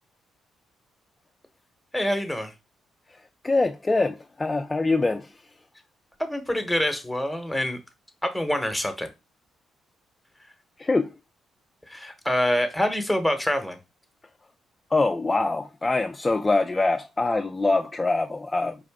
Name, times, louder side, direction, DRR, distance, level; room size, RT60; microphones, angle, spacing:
voice 1, 1.9-2.5 6.2-7.8 8.2-9.1 11.9-13.8, left 1 dB, ahead, 1.0 m, -26 dB
voice 2, 3.1-5.4 10.8-11.1 14.9-18.8, left 3 dB, 20° left, 0.3 m, -24 dB
4.6 x 2.5 x 3.5 m
cardioid pair, 90°, 0 cm